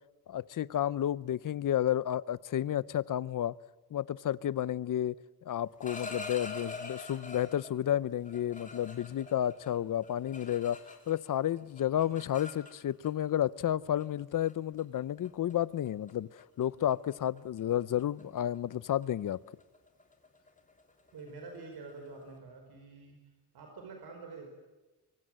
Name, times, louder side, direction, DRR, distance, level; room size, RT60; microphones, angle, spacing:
voice 1, 0.3-3.6 3.9-5.2 5.5-10.8 11.1-19.4, left 11 dB, 55° left, 0.7 m, -31 dB
sound 1, 5.6-7.7 8.3-11.3 11.6-13.1 14.0-14.2 14.5-14.8 15.2-15.5 15.9-16.1 16.4-16.7 16.9-22.3, left 3 dB, 20° left, 3.2 m, -46 dB
voice 2, 21.1-23.2 23.5-24.5, right 3 dB, 75° right, 4.9 m, -47 dB
25.0 x 24.0 x 7.6 m
wide cardioid pair, 140°, 38 cm